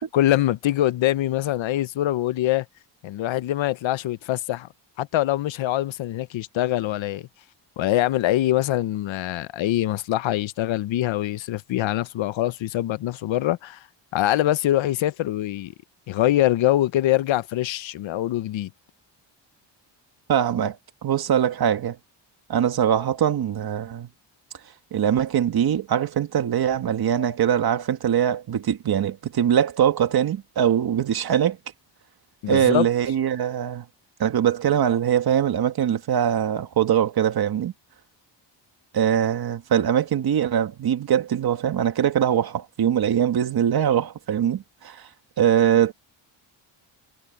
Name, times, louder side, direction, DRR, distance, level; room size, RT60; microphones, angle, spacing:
voice 1, 0.0-2.7 3.0-4.7 5.0-7.3 7.8-13.8 14.1-15.7 16.1-18.7 32.4-32.9, left 14 dB, 85° left, 0.9 m, -24 dB
voice 2, 20.3-20.8 21.0-22.0 22.5-24.1 24.9-31.6 32.5-33.9 34.2-37.7 38.9-45.0 45.4-45.9, right 9 dB, 55° right, 1.9 m, -22 dB
wide cardioid pair, 180°, 45 cm